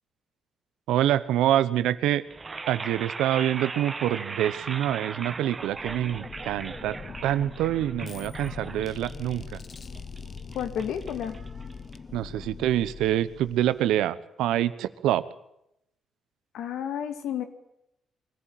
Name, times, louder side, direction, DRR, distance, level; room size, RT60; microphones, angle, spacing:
voice 1, 0.9-2.2 2.7-7.0 7.2-9.6 12.1-15.2, right 12 dB, 90° right, 14 dB, 1.0 m, -26 dB
sound 1, 2.3-12.3, right 4 dB, 30° right, 1.2 m, -39 dB
sound 2, 5.5-14.1, left 5 dB, 40° left, 0.9 m, -42 dB
voice 2, 10.5-11.4 16.5-17.4, left 9 dB, 80° left, 9 dB, 2.2 m, -31 dB
23.0 x 14.5 x 9.2 m, 0.82 s
cardioid pair, 90°, 0 cm